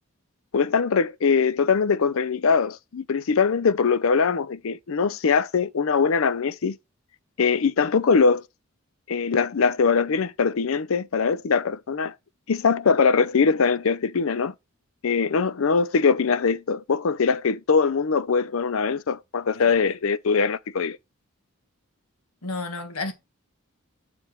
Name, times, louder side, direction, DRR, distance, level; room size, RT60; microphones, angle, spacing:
voice 1, 0.5-6.8 7.4-8.4 9.1-12.1 12.5-14.5 15.0-21.0, left 5 dB, 70° left, 0.5 m, -22 dB
voice 2, 19.5-19.9 22.4-23.1, left 3 dB, 90° left, 1.8 m, -32 dB
7.0 x 4.8 x 4.4 m
head